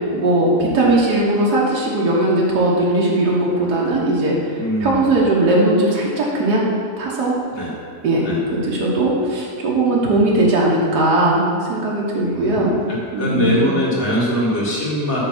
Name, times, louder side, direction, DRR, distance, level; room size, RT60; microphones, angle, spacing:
voice 1, 0.1-4.4 4.8-6.6 7.0-7.4 8.0-12.8 13.1-13.5, right 2 dB, 80° right, -4 dB, 1.8 m, -18 dB
voice 2, 4.5-5.3 7.5-7.8 8.2-8.4 12.3-12.8 13.2-15.2, equal, 45° left, -7 dB, 2.4 m, -22 dB
8.8 x 3.6 x 6.1 m, 2.2 s
omnidirectional pair, 1.7 m